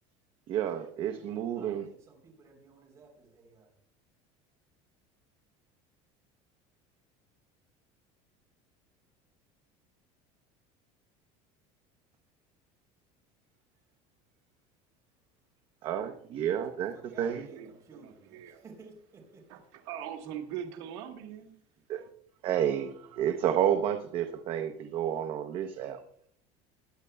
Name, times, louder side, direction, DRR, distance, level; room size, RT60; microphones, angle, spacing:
voice 1, 0.5-1.8 15.8-17.5 21.9-22.0 22.4-26.0, right 9 dB, 40° right, 5 dB, 0.7 m, -30 dB
voice 2, 1.1-3.7 16.7-19.4, right 4 dB, 20° right, 0 dB, 3.5 m, -54 dB
voice 3, 17.3-18.6 19.5-21.5, right 9 dB, 75° right, 4 dB, 1.4 m, -42 dB
20.5 x 9.7 x 2.3 m, 0.66 s
cardioid pair, 175°, 14 cm